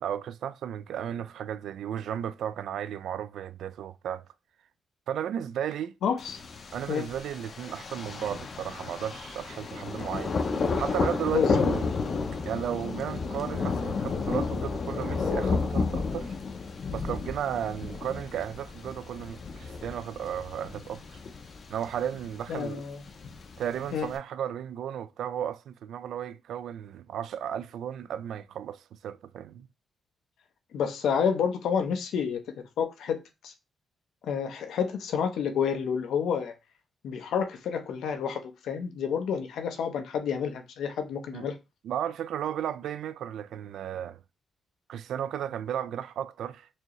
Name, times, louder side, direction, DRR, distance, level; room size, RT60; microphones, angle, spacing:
voice 1, 0.0-4.2 5.1-5.9 6.7-11.9 12.5-16.3 16.9-21.2 21.7-22.8 23.6-29.7 41.3-41.5 41.8-44.2 44.9-46.7, right 9 dB, 80° right, 0.3 m, -34 dB
voice 2, 6.0-6.4 6.9-7.1 11.3-11.6 22.5-23.0 23.9-24.1 30.7-32.4 32.8-33.2 33.4-33.5 34.2-36.5 37.0-41.5, left 7 dB, 80° left, 0.7 m, -29 dB
Thunder, 6.2-24.2, left 4 dB, 40° left, 0.6 m, -32 dB
4.4 x 2.8 x 3.0 m
wide cardioid pair, 165°, 0 cm